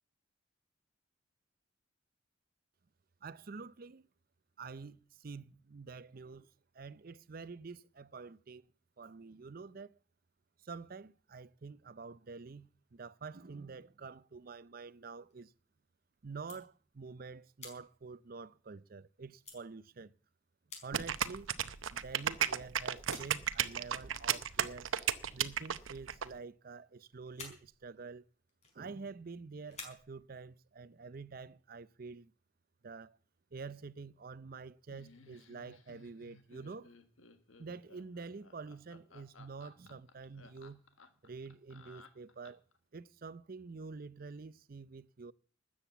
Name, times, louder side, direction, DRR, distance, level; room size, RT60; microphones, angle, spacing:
voice 1, 3.2-4.0 4.6-6.5 6.7-8.6 9.0-10.0 10.6-15.5 16.2-20.1 20.8-21.5 21.9-24.9 25.3-28.2 28.7-32.3 32.8-33.2 33.5-36.9 37.6-40.8 41.2-42.6 42.9-45.3, right 4 dB, 45° right, 0.5 m, -48 dB
sound 1, 15.0-15.9 16.3-17.2 17.6-19.0 19.4-19.6 20.3-20.4 20.7-21.0 21.4-22.2 22.7-23.5 23.7-24.1 24.8-25.0 25.2-26.3 26.6-26.9 27.1-29.3 29.6-30.6, left 4 dB, 35° left, 4.8 m, -53 dB
sound 2, 20.9-26.3, right 9 dB, 85° right, 0.8 m, -33 dB
Laughter, 34.9-42.8, left 4 dB, 90° left, 1.6 m, -59 dB
13.0 x 8.7 x 8.1 m
head